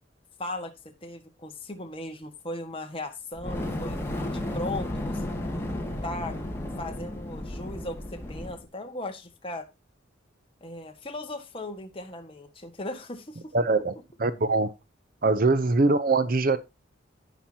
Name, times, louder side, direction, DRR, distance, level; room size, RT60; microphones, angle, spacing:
voice 1, 0.4-4.0 4.3-5.2 6.0-6.4 6.8-9.7 10.6-13.5, left 1 dB, 30° left, 1.7 m, -37 dB
Fire, 3.3-8.6, left 1 dB, 15° left, 2.1 m, -33 dB
voice 2, 13.5-14.7 15.2-16.6, right 3 dB, 45° right, 0.7 m, -23 dB
17.5 x 5.9 x 2.9 m
head